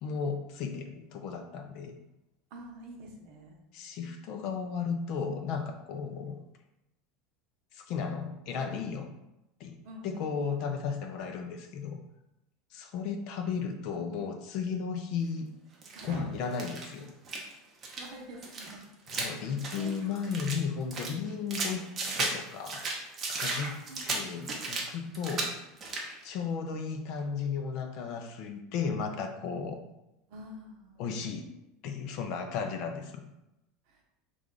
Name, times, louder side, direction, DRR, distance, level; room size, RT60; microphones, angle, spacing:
voice 1, 0.0-1.9 3.7-6.4 7.7-9.1 9.6-9.8 10.0-12.0 12.7-15.5 16.0-17.1 19.1-21.8 22.1-22.9 23.3-23.8 24.1-25.6 26.2-29.8 31.0-31.5 31.8-33.2, left 6 dB, 50° left, 6 dB, 0.4 m, -34 dB
voice 2, 2.5-3.6 9.8-10.5 15.9-16.3 18.0-18.8 19.8-19.9 23.9-24.6 30.3-31.1 33.9-34.0, right 1 dB, 55° right, 0 dB, 0.8 m, -46 dB
sound 1, 15.8-16.1 16.5-17.5 17.8-18.1 18.4-20.6 20.9-22.4 22.6-24.9 25.1-25.5 25.8-26.1, right 3 dB, 25° right, 0.6 m, -35 dB
3.2 x 2.4 x 3.7 m, 0.91 s
supercardioid pair, 160°, 0 cm